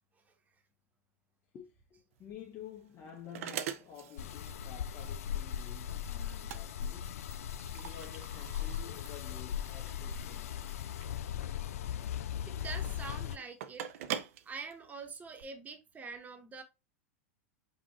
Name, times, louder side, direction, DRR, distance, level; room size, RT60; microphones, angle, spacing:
voice 1, 1.5-7.2 7.7-10.7, left 9 dB, 35° left, 1.0 m, -51 dB
sound 1, 2.1-15.4, right 10 dB, 70° right, 0.6 m, -45 dB
sound 2, 4.2-13.4, left 9 dB, 80° left, 0.4 m, -38 dB
voice 2, 12.5-13.8 14.4-16.6, right 4 dB, 20° right, 1.1 m, -45 dB
5.4 x 2.5 x 3.0 m
hypercardioid pair, 110°, 8 cm